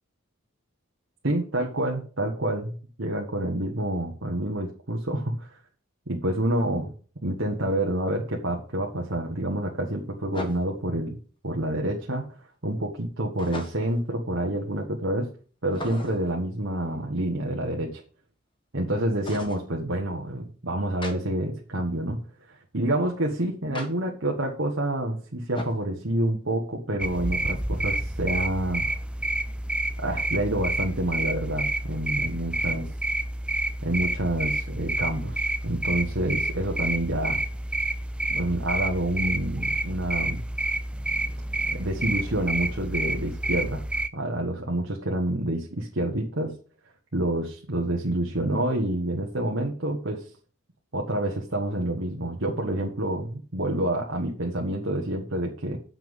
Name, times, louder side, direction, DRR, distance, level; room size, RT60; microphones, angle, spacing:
voice 1, 1.2-5.6 6.1-6.9 7.2-11.2 11.4-12.2 12.6-15.3 15.6-18.0 18.7-22.2 22.5-28.9 30.0-32.9 33.8-37.4 38.3-40.5 41.7-43.8 44.1-46.5 47.1-50.2 50.9-55.8, right 1 dB, 65° right, 0 dB, 1.4 m, -28 dB
sound 1, 7.7-7.8 10.3-10.9 13.4-14.0 15.7-16.3 19.2-19.7 21.0-21.2 23.7-23.9 25.5-25.8, left 1 dB, 25° left, 1.4 m, -37 dB
sound 2, 27.0-44.1, right 1 dB, 5° right, 0.4 m, -29 dB
7.9 x 5.9 x 7.2 m, 0.41 s
head